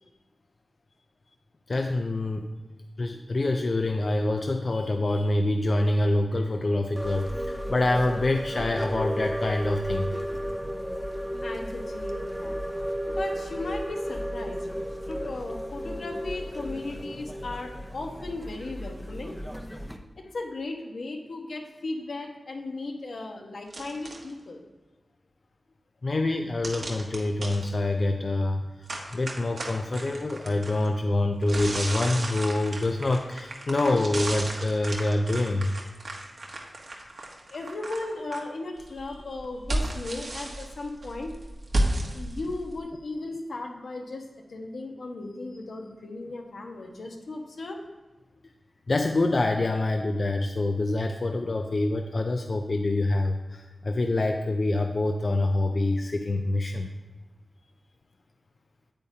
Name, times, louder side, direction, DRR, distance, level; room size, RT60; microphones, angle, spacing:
voice 1, 1.7-2.5 3.0-10.1 26.0-35.7 41.8-41.9 48.9-56.9, left 2 dB, 50° left, 4 dB, 0.5 m, -26 dB
sound 1, 7.0-20.0, equal, ahead, 0.7 m, -33 dB
voice 2, 11.4-12.5 13.1-14.6 15.1-19.3 20.3-24.6 37.5-41.3 42.1-47.8, left 2 dB, 80° left, 1 dB, 1.2 m, -36 dB
sound 2, 23.7-24.3 26.6-27.7 28.9-30.9 31.4-38.4 38.8-42.8, right 1 dB, 65° right, 1.2 m, -33 dB
8.6 x 8.5 x 2.8 m, 1.2 s
wide cardioid pair, 80°, 0 cm